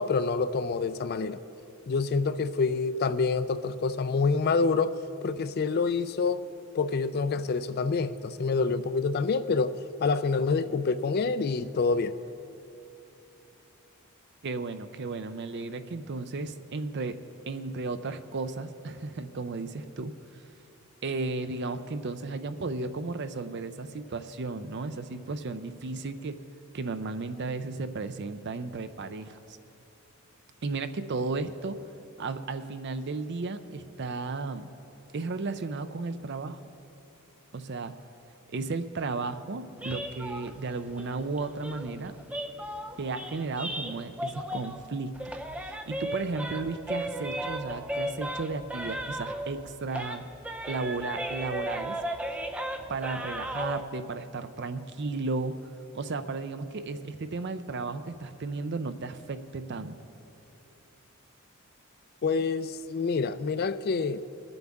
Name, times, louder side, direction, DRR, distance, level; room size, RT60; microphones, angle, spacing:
voice 1, 0.0-1.4 1.9-6.4 6.7-12.1 62.2-64.2, left 4 dB, 45° left, 13 dB, 0.4 m, -27 dB
voice 2, 14.4-17.2 17.5-20.1 21.0-26.4 26.7-29.4 30.6-31.8 32.2-34.7 35.1-36.6 37.5-37.9 38.5-42.1 43.0-50.2 50.7-52.0 52.9-55.5 55.9-59.9, right 3 dB, 50° right, 10 dB, 0.5 m, -34 dB
sound 1, 39.8-44.9 45.1-49.6 49.9-53.8, equal, 5° right, 0.5 m, -36 dB
22.0 x 7.9 x 3.6 m, 2.8 s
head